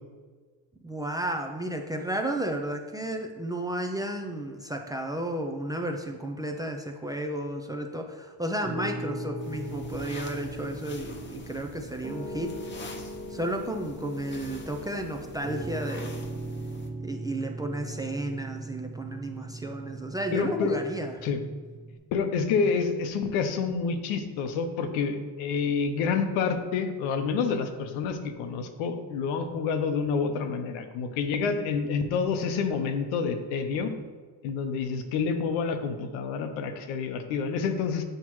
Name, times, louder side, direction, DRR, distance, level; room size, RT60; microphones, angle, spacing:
voice 1, 0.8-12.7 13.3-16.3 17.0-21.3, right 1 dB, 10° right, 3 dB, 0.4 m, -33 dB
Piano, 8.6-22.0, right 1 dB, 25° right, 1.2 m, -39 dB
sound 1, 9.4-16.9, left 3 dB, 25° left, 0.7 m, -46 dB
voice 2, 20.3-20.8 21.2-21.4 22.1-33.9 34.4-38.0, left 5 dB, 85° left, 7 dB, 0.9 m, -28 dB
7.8 x 5.7 x 3.1 m, 1.4 s
cardioid pair, 115°, 46 cm